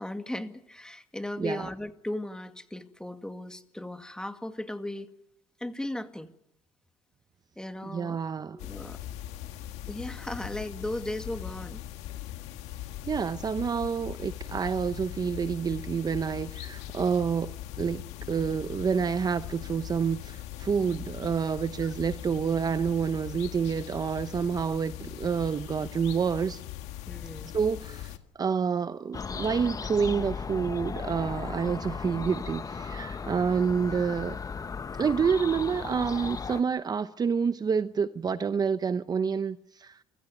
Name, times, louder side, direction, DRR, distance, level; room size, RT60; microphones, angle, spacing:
voice 1, 0.0-5.1 5.6-6.3 7.6-8.2 8.5-9.0 9.9-11.8 21.8-21.9 27.1-27.6, left 1 dB, 5° left, 2.1 m, -36 dB
voice 2, 7.8-8.6 13.1-17.5 17.8-26.6 27.5-34.4 35.0-40.0, right 6 dB, 35° right, 0.8 m, -28 dB
sound 1, 8.6-28.2, left 13 dB, 85° left, 1.7 m, -40 dB
sound 2, 29.1-36.6, left 5 dB, 30° left, 1.1 m, -36 dB
28.0 x 15.5 x 9.6 m
cardioid pair, 85°, 11 cm